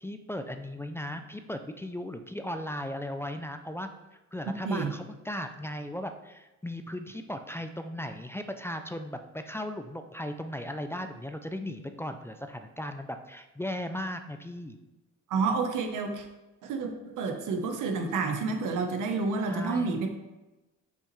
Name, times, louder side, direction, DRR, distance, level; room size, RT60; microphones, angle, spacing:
voice 1, 0.0-14.8 19.5-20.0, left 1 dB, 10° left, 7 dB, 0.4 m, -37 dB
voice 2, 15.3-16.3 16.6-20.1, right 4 dB, 85° right, 4 dB, 1.1 m, -29 dB
7.0 x 5.5 x 3.2 m, 1.0 s
cardioid pair, 90°, 30 cm